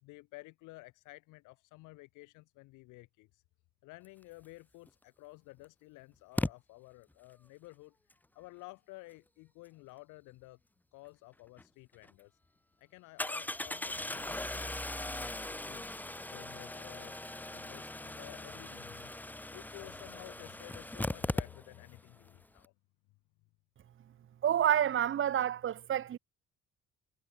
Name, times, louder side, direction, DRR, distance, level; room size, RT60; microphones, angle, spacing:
voice 1, 0.0-3.3 3.8-8.0 8.4-10.6 10.9-12.3 12.8-15.9 16.3-17.1 17.4-19.1 19.5-22.7, left 22 dB, 85° left, 2.0 m, -53 dB
Engine starting, 4.9-5.0 6.4-6.5 11.6-11.7 12.0-12.1 13.2-22.0 22.3-22.4 22.6-22.7, left 1 dB, 5° left, 0.5 m, -39 dB
voice 2, 24.4-26.2, right 10 dB, 45° right, 0.6 m, -28 dB
supercardioid pair, 65°, 30 cm